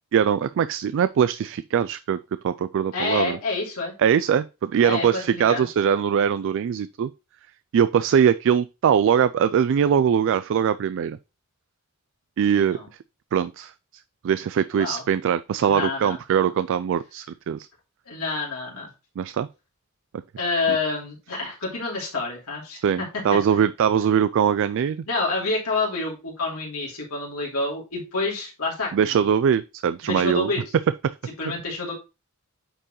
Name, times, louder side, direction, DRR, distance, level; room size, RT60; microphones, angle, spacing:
voice 1, 0.1-2.2 2.4-3.4 4.0-7.1 7.7-11.2 12.4-12.8 13.3-13.7 14.2-17.7 19.2-19.5 20.7-20.8 22.8-25.0 28.9-30.5, right 8 dB, 60° right, 0.3 m, -21 dB
voice 2, 2.9-3.9 4.8-5.7 12.5-12.9 14.7-15.0 15.6-16.2 18.1-18.9 20.4-23.1 23.5-23.6 25.1-29.3 30.0-30.6 31.4-31.9, left 3 dB, 80° left, 2.8 m, -28 dB
8.8 x 4.6 x 3.0 m
head